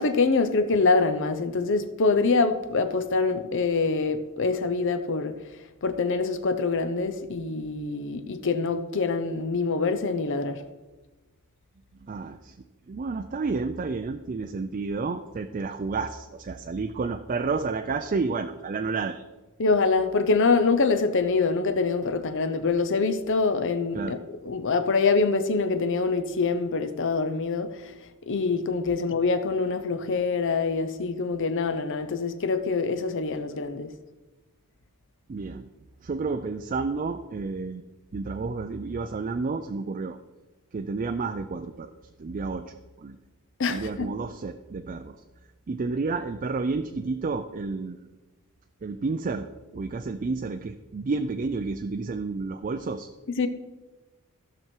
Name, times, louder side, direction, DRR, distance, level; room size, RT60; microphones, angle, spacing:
voice 1, 0.0-5.3 5.8-10.6 19.6-27.9 28.2-33.9 43.6-44.1 53.4-53.5, left 4 dB, 60° left, 0.7 m, -25 dB
voice 2, 12.1-12.5 12.9-19.2 23.9-24.2 35.3-35.7 36.0-37.8 38.1-40.2 40.7-41.9 42.2-43.2 43.7-45.1 45.7-48.0 48.8-49.5 49.7-53.1, right 4 dB, 35° right, 0.4 m, -30 dB
15.0 x 6.1 x 4.5 m
head